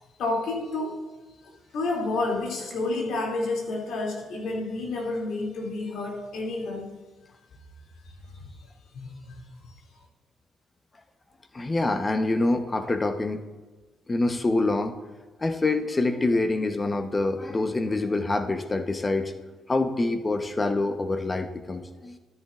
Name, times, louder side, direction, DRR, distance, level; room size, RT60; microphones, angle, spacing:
voice 1, 0.2-1.0 1.4-6.9 8.1-8.5 8.9-9.4, left 2 dB, 75° left, -1 dB, 2.8 m, -30 dB
voice 2, 11.5-13.5 14.1-14.9 15.4-19.3 19.7-22.2, left 2 dB, 25° left, 8 dB, 1.0 m, -26 dB
13.5 x 10.0 x 2.5 m, 1.3 s
supercardioid pair, 70°, 0 cm